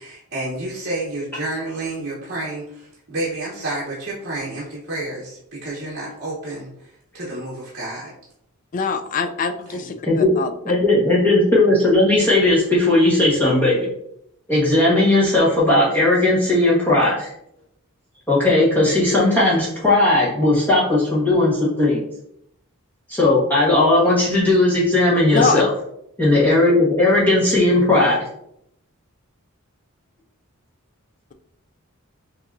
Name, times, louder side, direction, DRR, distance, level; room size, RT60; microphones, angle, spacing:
voice 1, 0.0-8.1 9.7-9.9, right 2 dB, 45° right, -6 dB, 1.0 m, -30 dB
voice 2, 8.7-10.5 25.3-25.6, left 5 dB, 35° left, 8 dB, 0.3 m, -23 dB
voice 3, 10.6-13.8 14.5-17.3 18.3-22.0 23.1-25.7 26.2-28.2, left 2 dB, 10° left, -8 dB, 1.4 m, -17 dB
5.8 x 2.9 x 2.6 m, 0.75 s
head